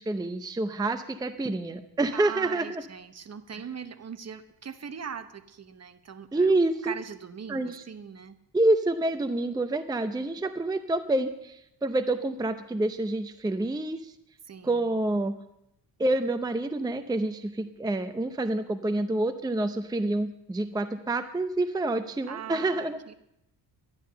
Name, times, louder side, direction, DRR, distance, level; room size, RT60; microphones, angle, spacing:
voice 1, 0.0-2.8 3.5-3.6 6.3-6.9 7.5-7.8 8.5-14.1 14.6-15.4 16.0-23.0, right 2 dB, 10° right, 9 dB, 0.6 m, -27 dB
voice 2, 2.1-6.5 6.8-8.4 14.4-14.9 22.3-23.1, right 7 dB, 40° right, 11 dB, 1.0 m, -40 dB
12.0 x 10.5 x 6.7 m, 0.81 s
cardioid pair, 105°, 40 cm